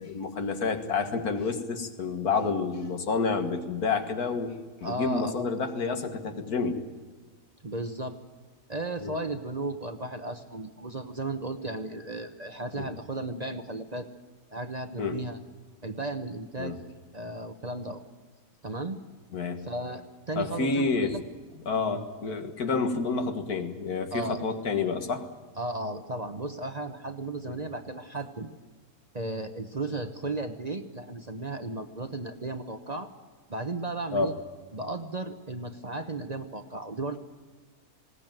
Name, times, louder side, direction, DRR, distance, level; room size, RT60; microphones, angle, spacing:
voice 1, 0.0-6.8 9.0-9.2 12.8-12.9 15.0-15.2 16.6-16.8 19.3-19.6 20.4-21.2 21.7-25.2 27.5-27.6 34.1-34.3, left 4 dB, 80° left, 7 dB, 2.1 m, -29 dB
voice 2, 4.8-5.5 7.6-8.2 8.7-14.1 14.5-15.4 15.8-16.8 17.1-18.0 18.6-19.0 19.6-21.2 21.9-22.0 24.1-24.4 25.6-28.5 29.1-33.1 33.5-34.3 34.7-37.2, right 2 dB, 30° right, 8 dB, 1.0 m, -35 dB
20.5 x 17.5 x 9.1 m, 1.4 s
omnidirectional pair, 1.6 m